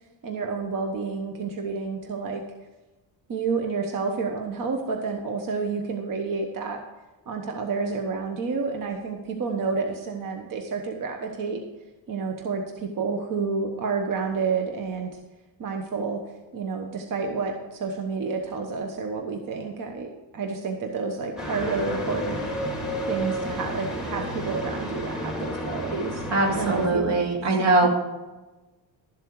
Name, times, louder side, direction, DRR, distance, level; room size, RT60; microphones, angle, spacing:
voice 1, 0.2-2.4 3.3-6.8 7.3-11.6 12.1-15.1 15.6-16.2 16.5-22.5 23.1-26.2 26.5-27.1 27.6-27.9, right 4 dB, 50° right, 3 dB, 1.2 m, -29 dB
sound 1, 21.4-26.9, equal, ahead, 2.7 m, -31 dB
voice 2, 26.3-27.9, right 2 dB, 70° right, 0 dB, 2.6 m, -22 dB
12.5 x 7.5 x 4.7 m, 1.1 s
cardioid pair, 140°, 43 cm